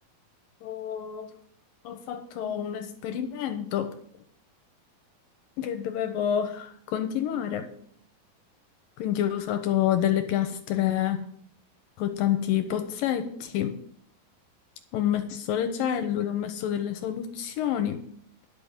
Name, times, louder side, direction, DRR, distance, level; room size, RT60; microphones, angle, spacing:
voice 1, 0.6-1.3 1.8-3.9 5.6-7.7 9.0-11.3 12.0-13.8 14.9-18.0, left 10 dB, 75° left, 8 dB, 2.3 m, -28 dB
11.0 x 6.9 x 7.3 m, 0.64 s
omnidirectional pair, 4.5 m